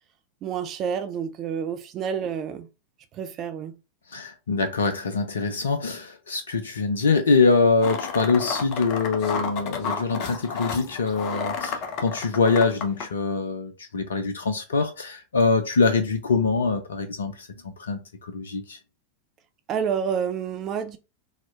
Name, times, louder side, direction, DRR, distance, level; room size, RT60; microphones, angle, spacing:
voice 1, 0.4-2.7 3.1-3.7 19.7-21.0, right 7 dB, 35° right, 0.4 m, -29 dB
voice 2, 4.1-18.8, left 4 dB, 70° left, 0.5 m, -24 dB
sound 1, 7.8-13.0, left 5 dB, 40° left, 0.8 m, -31 dB
4.1 x 2.8 x 2.5 m
figure-of-eight pair, 90°, 0 cm